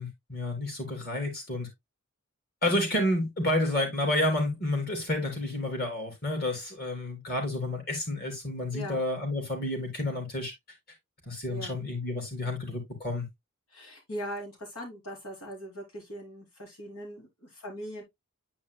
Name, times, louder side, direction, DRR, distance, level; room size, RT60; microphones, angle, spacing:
voice 1, 0.0-1.7 2.6-10.5 11.3-13.3, left 1 dB, 45° left, 3.7 m, -30 dB
voice 2, 8.7-9.0 11.4-11.8 13.7-18.0, equal, 85° left, 4.4 m, -40 dB
9.8 x 5.4 x 2.3 m
head